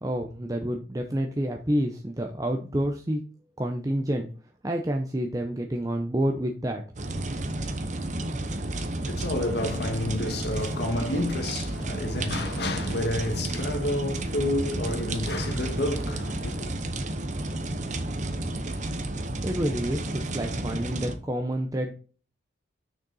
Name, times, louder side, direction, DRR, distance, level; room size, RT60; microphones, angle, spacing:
voice 1, 0.0-3.2 3.6-4.3 4.6-6.8 19.4-21.9, right 1 dB, 20° right, 0.7 m, -28 dB
sound 1, 7.0-21.2, right 1 dB, 40° right, 1.0 m, -31 dB
voice 2, 8.7-16.8, left 1 dB, 60° left, 1.5 m, -30 dB
6.6 x 6.4 x 4.1 m
head